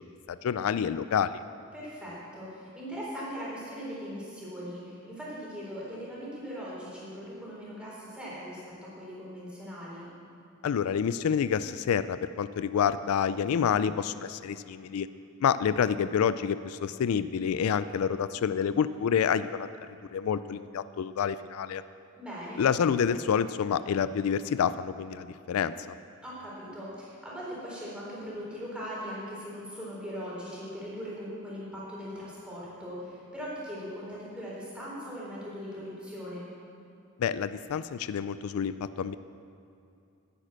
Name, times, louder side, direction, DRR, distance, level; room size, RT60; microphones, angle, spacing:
voice 1, 0.3-1.4 10.6-15.1 15.4-19.7 20.1-21.8 22.6-26.0 37.2-39.2, left 7 dB, 80° left, 14 dB, 0.3 m, -28 dB
voice 2, 1.7-10.1 22.2-22.6 26.2-36.5, equal, 5° right, -7 dB, 3.9 m, -40 dB
10.5 x 10.0 x 7.6 m, 2.5 s
head